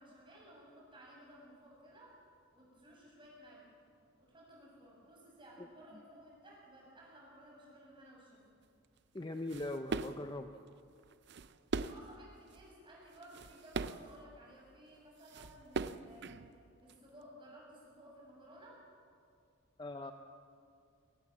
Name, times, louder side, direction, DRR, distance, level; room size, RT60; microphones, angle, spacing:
voice 1, 0.0-2.1 2.5-3.7 4.2-8.4 11.8-16.4 16.8-18.8, right 1 dB, 25° right, -3 dB, 7.3 m, -57 dB
voice 2, 9.1-10.5 19.8-20.1, left 1 dB, 20° left, 6 dB, 0.7 m, -41 dB
sound 1, 9.2-10.3 11.0-12.1 12.5-12.7 13.1-14.2 15.0-15.1 15.2-16.9, right 4 dB, 55° right, 0.6 m, -40 dB
23.5 x 18.0 x 7.4 m, 2.4 s
head